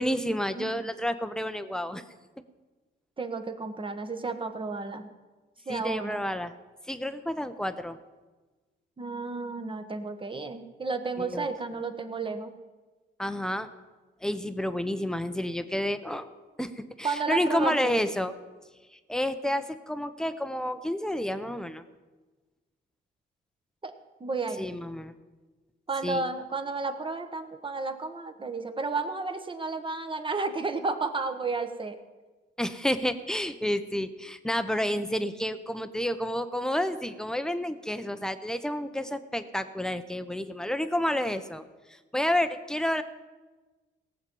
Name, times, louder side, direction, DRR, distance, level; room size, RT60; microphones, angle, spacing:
voice 1, 0.0-2.0 5.7-6.5 6.9-8.0 11.2-11.5 13.2-13.7 14.2-16.3 16.6-18.3 18.9-21.8 24.6-25.1 26.0-26.2 32.6-41.6 41.9-43.0, left 1 dB, 5° left, 10 dB, 0.8 m, -30 dB
voice 2, 0.6-0.9 3.2-5.1 5.7-6.2 9.0-12.5 17.0-18.0 23.8-23.9 24.2-24.7 25.9-32.0, right 3 dB, 25° right, 7 dB, 1.3 m, -32 dB
18.0 x 7.3 x 5.4 m, 1.3 s
cardioid pair, 90°, 20 cm